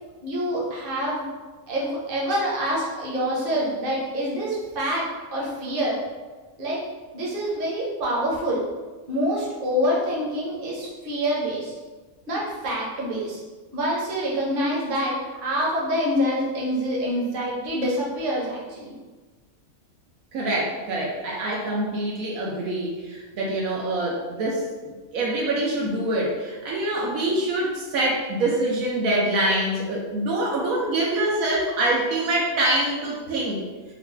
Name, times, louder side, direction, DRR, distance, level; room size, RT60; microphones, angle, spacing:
voice 1, 0.2-1.2 1.7-6.0 6.6-6.8 7.1-8.6 9.1-11.7 12.3-13.4 13.7-18.9, equal, 45° right, -4 dB, 0.9 m, -26 dB
voice 2, 20.3-33.6, right 1 dB, 75° right, -3 dB, 1.0 m, -25 dB
3.9 x 2.2 x 3.3 m, 1.3 s
omnidirectional pair, 1.5 m